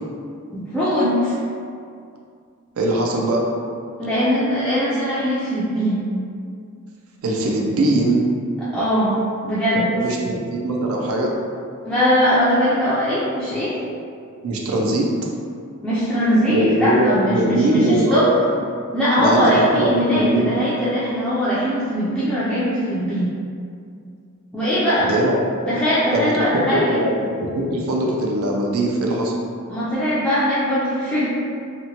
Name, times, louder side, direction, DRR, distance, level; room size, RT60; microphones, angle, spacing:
voice 1, 0.5-1.3 4.0-6.1 8.7-9.2 9.4-9.9 11.8-13.8 15.8-18.3 18.9-23.3 24.5-25.1 25.7-27.1 29.7-31.3, equal, ahead, -13 dB, 0.3 m, -20 dB
voice 2, 2.8-3.4 7.2-8.2 9.9-11.3 14.4-15.1 16.5-18.3 19.2-20.5 25.0-25.7 26.1-29.3, right 1 dB, 75° right, -1 dB, 0.4 m, -21 dB
2.8 x 2.1 x 2.7 m, 2.3 s
head